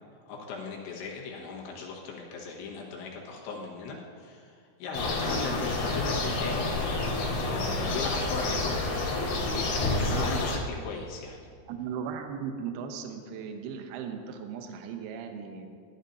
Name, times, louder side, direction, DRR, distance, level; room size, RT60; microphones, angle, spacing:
voice 1, 0.3-6.8 7.4-8.8 9.4-11.5, left 4 dB, 85° left, -2 dB, 3.8 m, -38 dB
sound 1, 4.9-10.6, left 2 dB, 55° left, 3.2 m, -29 dB
voice 2, 9.9-10.3 11.7-15.7, right 7 dB, 75° right, 5 dB, 2.5 m, -37 dB
14.5 x 12.0 x 2.7 m, 2.3 s
omnidirectional pair, 5.2 m